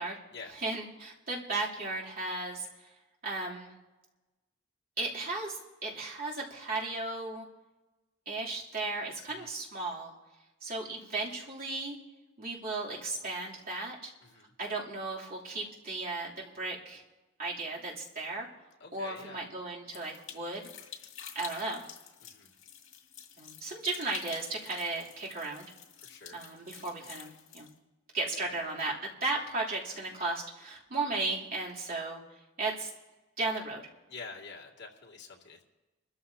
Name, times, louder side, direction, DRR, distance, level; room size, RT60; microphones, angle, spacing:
voice 1, 0.6-2.7 3.2-3.7 5.0-7.4 8.2-10.1 10.6-12.0 12.4-14.1 14.6-17.0 17.4-18.5 18.9-20.7 21.3-21.9 23.4-25.7 26.3-27.7 28.1-28.9 29.2-32.2 32.6-32.9 33.4-33.8, right 3 dB, 50° right, -5 dB, 3.2 m, -35 dB
voice 2, 14.2-14.5 18.8-19.5 22.2-22.5 26.0-26.4 28.3-28.5 34.1-35.6, left 4 dB, 60° left, -2 dB, 2.4 m, -47 dB
sound 1, 19.9-27.7, left 8 dB, 85° left, 2.1 m, -49 dB
27.5 x 13.5 x 2.8 m, 1.1 s
head